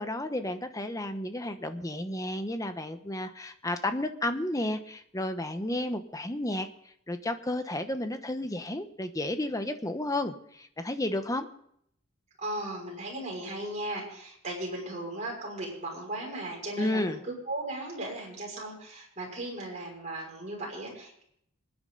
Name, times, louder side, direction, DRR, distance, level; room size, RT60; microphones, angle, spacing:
voice 1, 0.0-6.7 7.1-11.5 16.8-17.2, left 1 dB, 15° left, 8 dB, 1.0 m, -32 dB
voice 2, 12.4-21.2, right 1 dB, 35° right, -2 dB, 5.8 m, -37 dB
27.0 x 9.8 x 3.9 m, 0.70 s
head